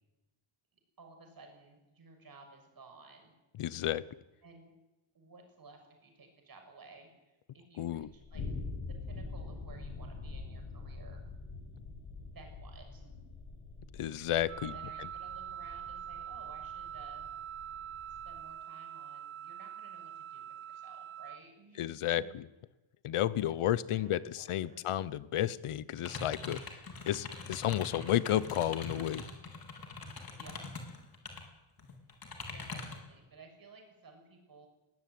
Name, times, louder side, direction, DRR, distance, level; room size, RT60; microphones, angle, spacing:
voice 1, 1.0-3.3 4.4-4.7 5.1-8.4 8.8-11.2 12.2-13.2 14.6-17.3 18.1-22.4 23.5-24.8 30.3-30.7 32.4-34.7, right 3 dB, 45° right, 4 dB, 6.7 m, -56 dB
voice 2, 3.6-4.0 7.8-8.1 13.9-14.7 21.8-22.5 23.0-26.8 27.0-29.2, left 12 dB, 85° left, 18 dB, 1.1 m, -32 dB
sound 1, 8.0-18.4, left 3 dB, 70° left, 7.5 m, -45 dB
Wind instrument woodwind instrument, 14.5-21.4, right 10 dB, 75° right, 1.0 m, -44 dB
sound 2, 26.0-31.4 31.8-33.1, left 4 dB, 45° left, 4.3 m, -43 dB
21.0 x 17.0 x 9.5 m, 1.1 s
wide cardioid pair, 140°, 49 cm